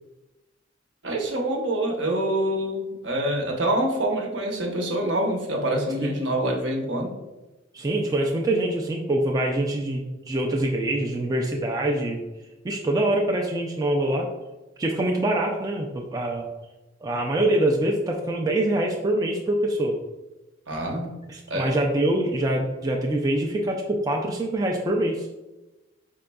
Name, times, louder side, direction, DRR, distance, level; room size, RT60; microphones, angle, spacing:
voice 1, 1.0-7.1 20.7-21.1 21.5-21.7, right 1 dB, 70° right, 0 dB, 0.9 m, -26 dB
voice 2, 7.7-12.2 12.6-14.3 14.8-16.5 17.0-20.0 21.3-25.3, right 1 dB, 20° right, 0 dB, 0.3 m, -24 dB
5.1 x 3.7 x 2.2 m, 1.1 s
head